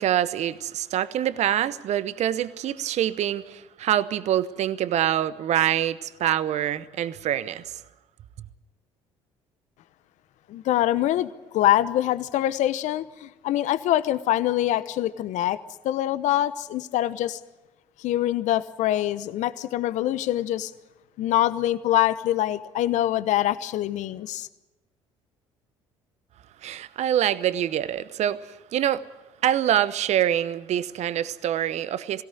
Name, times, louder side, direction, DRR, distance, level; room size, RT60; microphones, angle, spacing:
voice 1, 0.0-7.8 26.6-29.0 29.4-32.2, right 11 dB, 55° right, 0.9 m, -25 dB
voice 2, 10.5-15.6 15.8-17.4 18.0-20.7 21.2-24.5, left 13 dB, 65° left, 0.9 m, -24 dB
21.0 x 17.5 x 9.2 m
hypercardioid pair, 55°, 14 cm